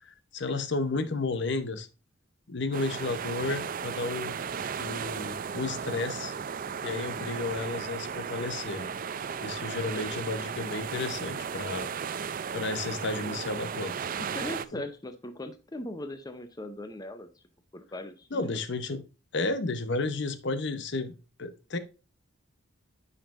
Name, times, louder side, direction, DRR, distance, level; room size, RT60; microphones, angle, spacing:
voice 1, 0.1-1.9 2.5-4.4 4.8-6.3 6.8-8.9 9.4-11.9 12.5-13.9 14.7-14.8 18.3-19.0 19.3-21.1 21.4-21.8, left 3 dB, 60° left, 11 dB, 0.8 m, -32 dB
sound 1, 2.7-14.6, right 6 dB, 45° right, 0.4 m, -35 dB
voice 2, 9.9-10.2 13.2-13.4 14.2-17.4 17.7-18.6, left 1 dB, 20° left, 8 dB, 0.6 m, -40 dB
9.8 x 5.5 x 2.5 m, 0.32 s
head